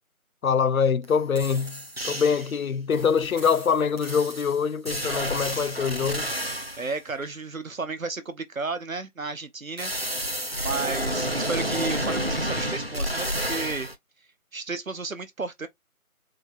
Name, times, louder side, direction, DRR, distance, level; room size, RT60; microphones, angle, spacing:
voice 1, 0.4-6.3, left 6 dB, 70° left, 0.6 m, -24 dB
sound 1, 1.0-1.1 1.4-2.6 2.9-6.9 9.8-13.9, equal, 45° right, 0.6 m, -30 dB
voice 2, 6.8-9.9 10.6-13.9 14.5-15.7, right 4 dB, 65° right, 1.0 m, -33 dB
4.3 x 2.5 x 3.2 m
figure-of-eight pair, 175°, 43 cm